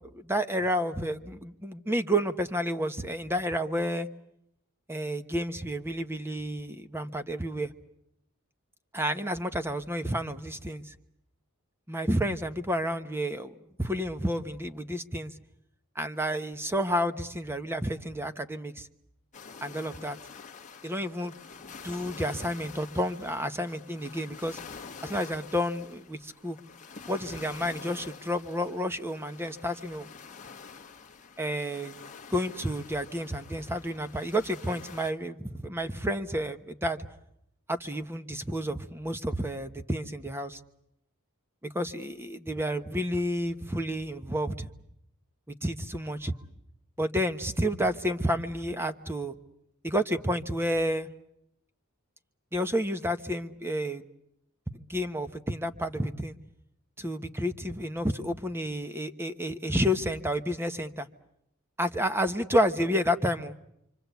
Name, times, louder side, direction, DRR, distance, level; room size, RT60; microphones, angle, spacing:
voice 1, 0.1-4.1 4.9-7.7 8.9-10.9 11.9-15.3 15.9-18.9 19.6-20.2 20.8-21.3 21.8-24.6 25.0-26.6 27.1-30.1 31.4-32.0 32.3-37.1 37.7-40.6 41.6-44.7 45.5-46.3 47.0-49.3 49.8-51.1 52.5-54.1 54.7-56.4 57.0-61.1 61.8-63.6, equal, 10° right, 9 dB, 1.1 m, -30 dB
sound 1, 19.3-35.1, left 5 dB, 35° left, 1.5 m, -47 dB
28.0 x 25.0 x 8.2 m, 0.77 s
head